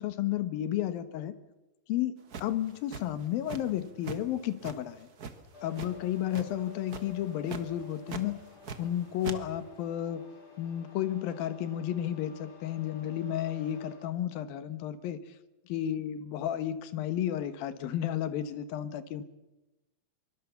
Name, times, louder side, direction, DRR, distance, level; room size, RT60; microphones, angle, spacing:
voice 1, 0.0-1.3 1.9-5.1 5.6-8.4 8.8-10.3 10.6-15.2 15.7-19.2, left 11 dB, 80° left, 12 dB, 3.0 m, -32 dB
sound 1, 2.3-3.8 4.0-4.2 4.6-5.9 6.3-6.6 6.9-7.1 7.4-7.6 8.1-8.9 9.2-9.4, right 5 dB, 60° right, 0.9 m, -40 dB
sound 2, 5.5-13.9, left 6 dB, 45° left, 8.9 m, -51 dB
24.0 x 23.5 x 7.1 m, 1.0 s
omnidirectional pair, 4.1 m